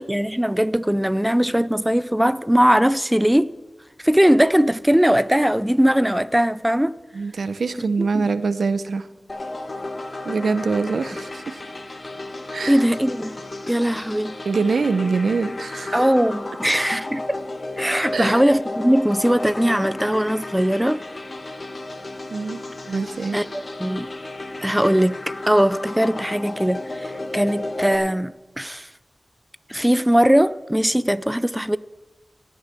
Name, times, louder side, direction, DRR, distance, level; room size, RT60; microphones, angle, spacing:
voice 1, 0.0-3.5 4.0-6.9 8.0-8.2 12.7-13.4 13.7-14.3 15.9-17.4 17.8-21.0 23.3-24.1 24.6-25.2 25.5-28.9 29.7-31.8, equal, 5° right, 0.5 m, -20 dB
voice 2, 7.1-9.1 10.2-11.6 12.5-12.8 14.4-16.0 18.1-18.4 22.3-22.6 22.9-23.4, right 4 dB, 85° right, 0.6 m, -24 dB
sound 1, 9.3-28.0, left 2 dB, 50° left, 1.7 m, -33 dB
16.5 x 6.4 x 7.5 m
cardioid pair, 50°, 0 cm